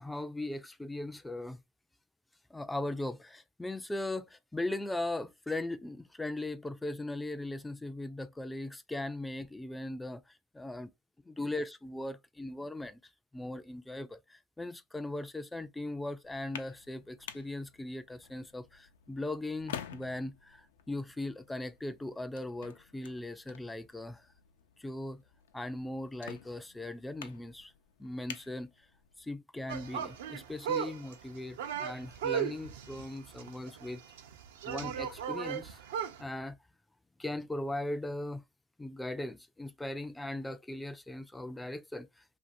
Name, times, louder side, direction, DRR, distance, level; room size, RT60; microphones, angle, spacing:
voice 1, 0.0-1.6 2.5-10.9 11.3-13.0 13.3-24.3 24.8-25.2 25.5-27.7 28.0-28.7 29.2-34.0 34.6-35.8 36.2-36.6 37.2-38.4 38.8-42.4, left 1 dB, 5° left, 0.3 m, -39 dB
sound 1, 16.2-29.3, left 9 dB, 85° left, 0.5 m, -50 dB
sound 2, 29.7-36.2, right 8 dB, 80° right, 0.6 m, -36 dB
2.8 x 2.6 x 2.5 m
supercardioid pair, 130°, 0 cm